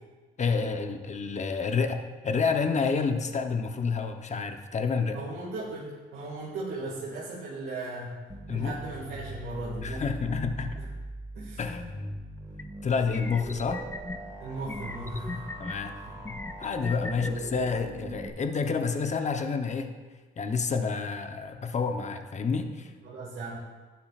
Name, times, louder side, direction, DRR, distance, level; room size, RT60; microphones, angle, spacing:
voice 1, 0.4-5.2 8.5-8.8 9.8-10.8 11.6-12.0 12.8-13.8 15.6-15.9 16.3-19.9 20.4-22.9, left 5 dB, 35° left, 7 dB, 0.8 m, -29 dB
voice 2, 5.1-8.2 8.5-10.1 10.8-10.9 11.3-11.6 14.4-15.5 16.1-16.2 17.1-17.4 23.0-23.6, right 2 dB, 90° right, -7 dB, 2.0 m, -37 dB
sound 1, 8.3-18.3, right 1 dB, 15° right, 1.8 m, -41 dB
sound 2, 12.6-12.7 13.1-14.2 14.7-15.7 16.2-17.3, left 2 dB, 10° left, 0.4 m, -37 dB
11.5 x 9.4 x 2.5 m, 1.4 s
cardioid pair, 90°, 20 cm